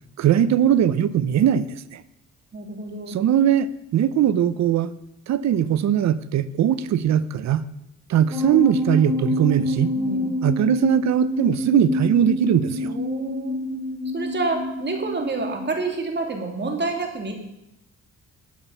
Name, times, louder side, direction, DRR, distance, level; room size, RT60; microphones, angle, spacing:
voice 1, 0.2-1.7 3.1-3.7 3.9-4.9 5.3-7.6 8.1-9.9 10.4-12.9, right 10 dB, 65° right, 16 dB, 0.8 m, -20 dB
voice 2, 2.5-3.1 9.9-10.3 12.8-13.6 14.1-17.3, right 3 dB, 35° right, 3 dB, 2.6 m, -28 dB
sound 1, 8.3-15.7, left 2 dB, 10° right, 4.0 m, -27 dB
13.0 x 8.8 x 5.6 m, 0.87 s
cardioid pair, 90°, 30 cm